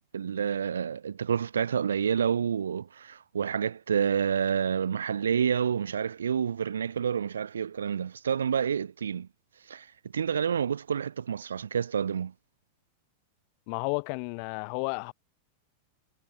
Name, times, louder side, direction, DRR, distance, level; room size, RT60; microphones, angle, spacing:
voice 1, 0.1-9.3 9.7-9.9 10.1-12.3, right 7 dB, 70° right, 1.2 m, -28 dB
voice 2, 13.7-15.1, left 40 dB or more, 45° left, 7.1 m, -32 dB
figure-of-eight pair, 90°, 0 cm